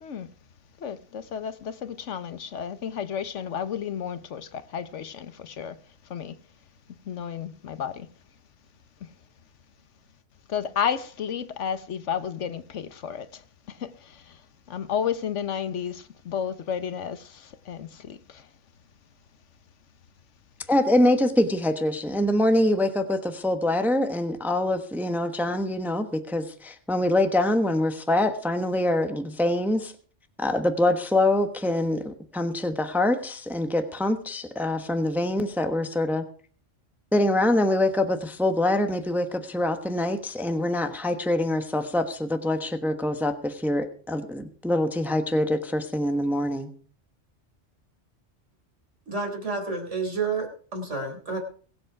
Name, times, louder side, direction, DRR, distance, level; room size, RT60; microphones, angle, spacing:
voice 1, 0.8-5.8 6.1-6.3 7.0-8.1 10.5-13.4 13.7-14.4 14.7-18.5, left 8 dB, 80° left, 1.3 m, -32 dB
voice 2, 20.7-29.9 30.4-36.2 37.1-46.7, left 1 dB, ahead, 1.1 m, -24 dB
voice 3, 49.1-50.5 50.7-51.4, right 4 dB, 80° right, 4.3 m, -29 dB
22.5 x 7.8 x 4.7 m
omnidirectional pair, 1.2 m